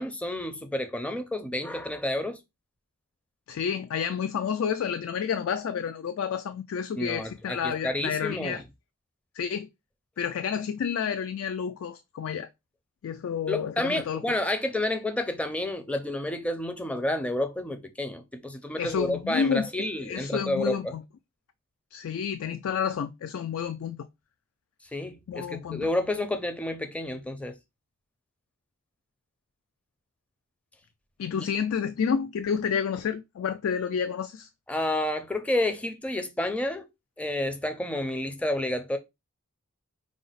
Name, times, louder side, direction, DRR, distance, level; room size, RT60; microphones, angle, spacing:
voice 1, 0.0-2.4 7.0-8.6 13.5-20.9 24.9-27.5 31.4-31.5 34.7-36.9 37.2-39.0, left 1 dB, 5° left, 0.4 m, -30 dB
voice 2, 3.5-8.6 9.3-9.7 10.2-12.5 13.0-14.2 18.8-19.7 20.0-21.0 21.9-24.0 25.3-25.9 31.2-34.5, left 7 dB, 75° left, 0.3 m, -30 dB
4.8 x 2.0 x 3.9 m
head